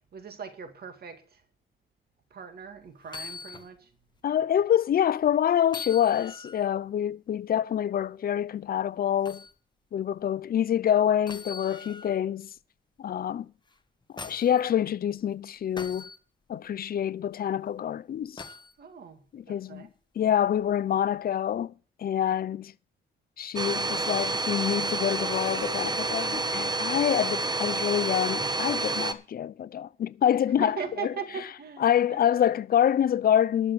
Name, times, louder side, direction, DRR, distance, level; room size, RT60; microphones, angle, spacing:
voice 1, 0.1-1.4 2.3-3.9 18.8-19.2 19.5-19.9 30.6-32.4, right 6 dB, 50° right, 2.1 m, -39 dB
sound 1, 3.0-3.7 4.2-4.3 5.7-6.7 9.2-9.5 11.3-12.2 13.7-14.6 15.8-16.2 18.4-18.7 20.5-20.7, left 4 dB, 20° left, 1.3 m, -42 dB
voice 2, 4.2-9.4 9.9-12.5 13.0-13.5 14.2-16.1 16.5-18.4 19.3-19.9 20.2-21.7 22.0-22.7 23.4-31.1 31.8-33.7, left 10 dB, 50° left, 0.6 m, -26 dB
Domestic sounds home sounds, 23.6-29.1, right 3 dB, 20° right, 1.1 m, -29 dB
12.0 x 7.1 x 6.8 m
cardioid pair, 90°, 20 cm